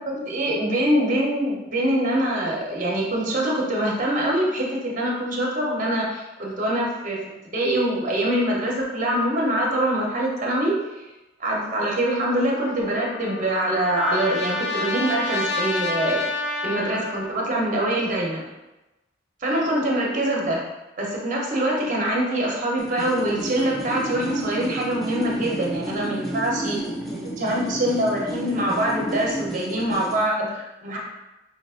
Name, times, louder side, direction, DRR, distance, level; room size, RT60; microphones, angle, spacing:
voice 1, 0.0-7.2 7.5-10.8 11.4-16.2 16.6-18.4 19.4-20.6 21.0-26.9 27.2-31.0, right 1 dB, 45° right, -3 dB, 0.9 m, -24 dB
Trumpet, 12.6-17.5, left 2 dB, 65° left, 0.6 m, -29 dB
sound 1, 22.8-30.3, right 1 dB, ahead, 0.6 m, -32 dB
5.6 x 3.0 x 2.4 m, 1.0 s
head